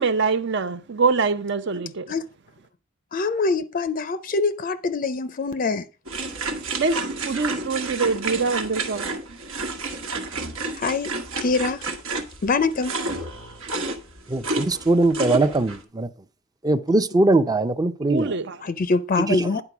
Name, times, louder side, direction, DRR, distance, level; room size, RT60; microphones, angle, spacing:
voice 1, 0.0-2.1 6.8-9.1 18.0-18.6, right 4 dB, 60° right, 0.7 m, -24 dB
voice 2, 3.1-5.8 10.8-11.9 12.4-12.9 18.6-19.6, left 3 dB, 40° left, 0.5 m, -24 dB
sound 1, 6.1-15.8, right 3 dB, 80° right, 1.4 m, -30 dB
voice 3, 14.3-16.1 16.6-18.3, right 2 dB, 20° right, 0.5 m, -21 dB
9.8 x 4.5 x 5.9 m
head